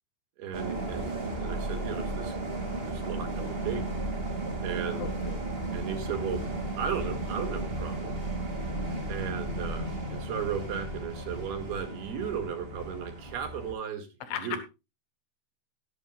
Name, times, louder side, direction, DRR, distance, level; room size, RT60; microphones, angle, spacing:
voice 1, 0.4-2.3 2.9-3.8 4.6-5.1 5.7-6.5 6.8-8.2 9.1-14.1 14.4-14.6, right 7 dB, 65° right, 5 dB, 3.7 m, -35 dB
sound 1, 0.5-13.7, right 2 dB, 35° right, 0.8 m, -34 dB
voice 2, 5.0-5.4 14.2-14.7, left 10 dB, 80° left, 9 dB, 3.4 m, -36 dB
17.5 x 10.0 x 2.3 m, 0.27 s
omnidirectional pair, 5.2 m